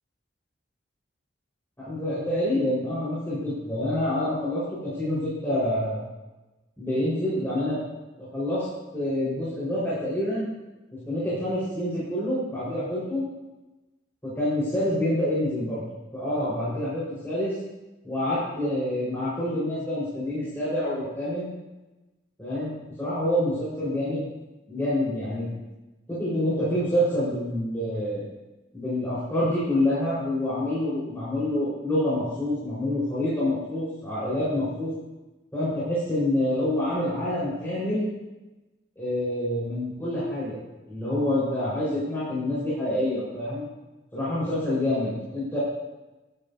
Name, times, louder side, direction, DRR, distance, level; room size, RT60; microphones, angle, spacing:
voice 1, 1.8-6.0 6.8-7.8 8.2-8.7 8.9-10.5 10.9-13.3 14.2-15.8 16.1-17.5 18.0-21.5 22.4-24.3 24.7-25.5 26.1-28.2 28.7-34.9 35.5-38.1 39.0-40.6 40.9-43.6 44.1-45.6, left 1 dB, 10° left, -11 dB, 4.8 m, -27 dB
19.0 x 12.5 x 2.8 m, 1.1 s
head